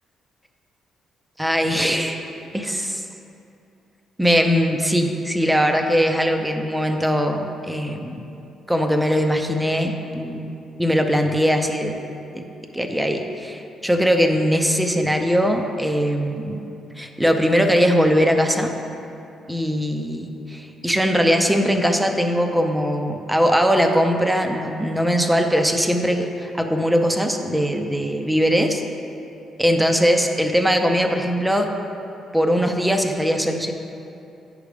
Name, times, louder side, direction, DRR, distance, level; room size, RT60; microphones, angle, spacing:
voice 1, 1.4-2.2 2.5-3.0 4.2-8.2 8.7-10.5 10.8-12.0 12.3-12.4 12.7-16.6 17.0-18.7 19.5-28.8 29.6-31.7 32.3-33.7, equal, 5° right, 4 dB, 0.5 m, -20 dB
9.2 x 5.0 x 3.3 m, 2.7 s
cardioid pair, 90°, 0 cm